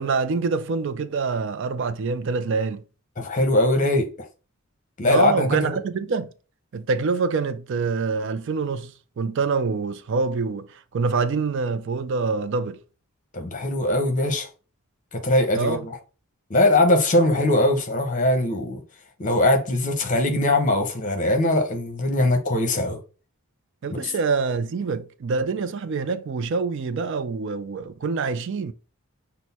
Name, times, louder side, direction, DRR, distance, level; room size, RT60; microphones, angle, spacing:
voice 1, 0.0-2.8 5.1-6.3 6.7-12.8 15.6-15.9 23.8-28.7, right 4 dB, 55° right, 0.4 m, -25 dB
voice 2, 3.2-4.3 5.0-5.8 13.3-14.5 15.1-15.9 16.5-18.8 19.2-23.0 23.9-24.0, left 1 dB, 35° left, 0.9 m, -21 dB
6.1 x 2.1 x 4.1 m
head